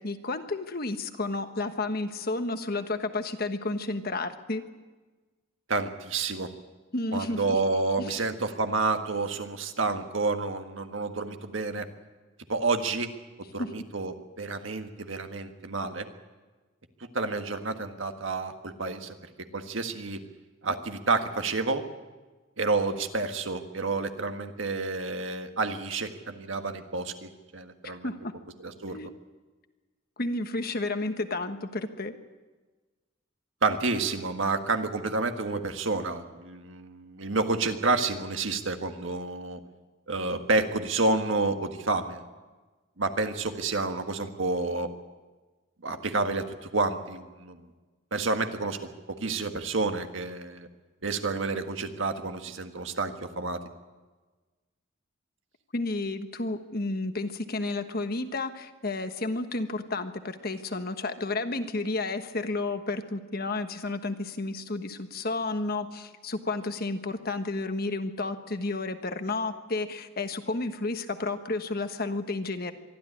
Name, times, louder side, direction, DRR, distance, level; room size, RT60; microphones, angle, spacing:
voice 1, 0.0-4.7 6.9-7.6 8.0-8.1 13.6-13.7 27.8-28.3 28.9-29.1 30.2-32.1 55.7-72.7, left 2 dB, 50° left, 8 dB, 1.3 m, -31 dB
voice 2, 5.7-6.5 7.1-11.9 12.5-13.1 13.5-16.1 17.1-19.2 19.5-20.2 20.6-21.8 22.6-28.1 28.6-29.0 33.6-39.6 40.1-42.2 43.0-44.9 45.8-47.6 48.1-50.7 51.0-53.6, right 3 dB, 70° right, 6 dB, 1.6 m, -29 dB
24.0 x 13.0 x 9.9 m, 1.3 s
head